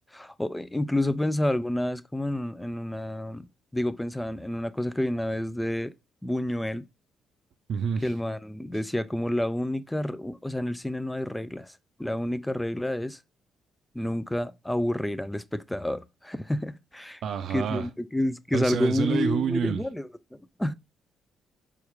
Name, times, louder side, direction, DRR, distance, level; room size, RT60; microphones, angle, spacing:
voice 1, 0.1-3.5 3.7-5.9 6.2-6.8 8.0-11.7 12.0-13.2 13.9-17.2 17.5-20.1 20.6-20.7, left 1 dB, 5° left, 0.3 m, -29 dB
voice 2, 7.7-8.1 17.2-17.9 18.5-19.8, right 7 dB, 65° right, 0.4 m, -28 dB
4.4 x 2.4 x 3.1 m
cardioid pair, 90°, 0 cm